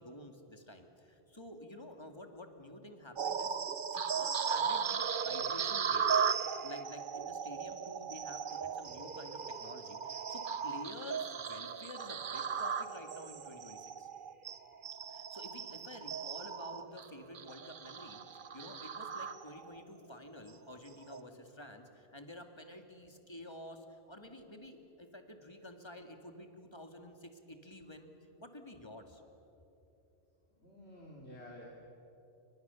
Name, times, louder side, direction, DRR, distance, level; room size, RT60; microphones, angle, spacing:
voice 1, 0.0-3.6 3.9-6.3 6.6-14.1 15.1-28.1 28.4-29.2, left 1 dB, 25° left, 5 dB, 2.2 m, -50 dB
sound 1, 3.2-19.8 20.3-20.5 21.0-21.2, right 6 dB, 55° right, 1.0 m, -37 dB
voice 2, 6.2-6.6 30.6-31.6, left 1 dB, 80° left, -3 dB, 3.4 m, -53 dB
29.5 x 24.5 x 7.1 m, 2.9 s
omnidirectional pair, 1.1 m